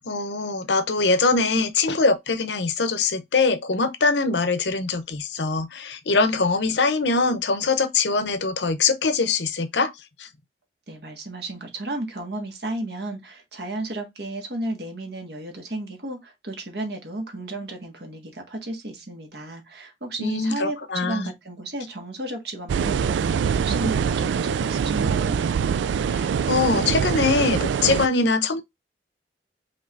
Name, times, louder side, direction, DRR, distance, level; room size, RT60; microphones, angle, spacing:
voice 1, 0.1-9.9 10.2-10.3 20.2-21.3 26.1-28.6, left 3 dB, 75° left, 0.8 m, -23 dB
voice 2, 10.9-25.4, right 2 dB, 65° right, 1.8 m, -33 dB
sound 1, 22.7-28.1, right 7 dB, 90° right, 0.3 m, -24 dB
5.3 x 3.3 x 2.6 m
head